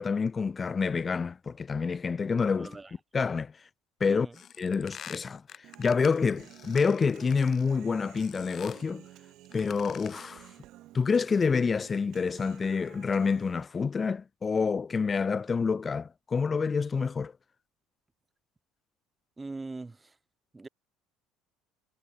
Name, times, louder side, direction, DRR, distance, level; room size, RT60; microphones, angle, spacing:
voice 1, 0.0-2.8 3.1-3.5 4.0-4.3 4.6-9.0 9.5-10.5 10.9-17.3, left 5 dB, 25° left, 0.4 m, -28 dB
voice 2, 2.6-2.9 4.1-4.3 19.4-20.0 20.5-20.7, right 3 dB, 15° right, 1.6 m, -40 dB
sound 1, 4.3-7.8 8.2-8.9 9.4-10.4, left 8 dB, 40° left, 0.9 m, -47 dB
Human voice, 5.6-13.6, right 15 dB, 60° right, 3.6 m, -53 dB
supercardioid pair, 100°, 0 cm